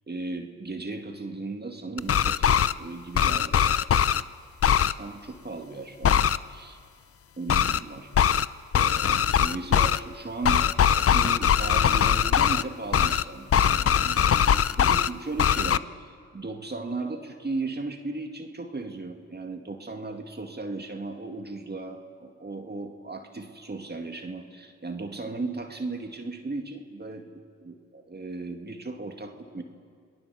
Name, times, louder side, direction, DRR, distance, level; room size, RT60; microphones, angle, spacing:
voice 1, 0.1-3.9 4.9-6.8 7.4-8.1 8.7-29.6, right 3 dB, 30° right, 4 dB, 2.1 m, -36 dB
sound 1, 2.0-2.7 3.1-4.2 4.6-4.9 6.0-6.4 7.5-7.8 8.1-8.5 8.7-10.0 10.4-12.6 12.9-13.2 13.5-15.1 15.4-15.8, left 9 dB, 45° left, 0.6 m, -21 dB
27.0 x 19.0 x 7.1 m, 2.1 s
supercardioid pair, 50°, 32 cm